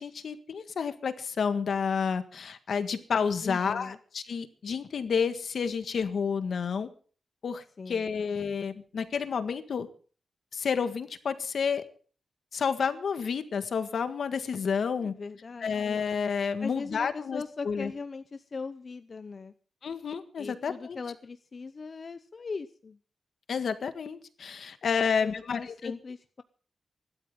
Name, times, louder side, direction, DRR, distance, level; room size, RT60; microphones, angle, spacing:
voice 1, 0.0-6.9 7.4-9.9 10.5-11.8 12.5-15.1 15.6-17.9 19.8-21.0 23.5-25.9, left 6 dB, 70° left, 10 dB, 1.7 m, -30 dB
voice 2, 3.4-4.0 7.8-8.2 15.0-16.0 16.6-19.5 20.4-23.0 25.0-26.4, left 4 dB, 40° left, 11 dB, 0.8 m, -40 dB
24.0 x 12.5 x 3.8 m, 0.42 s
wide cardioid pair, 125°, 0 cm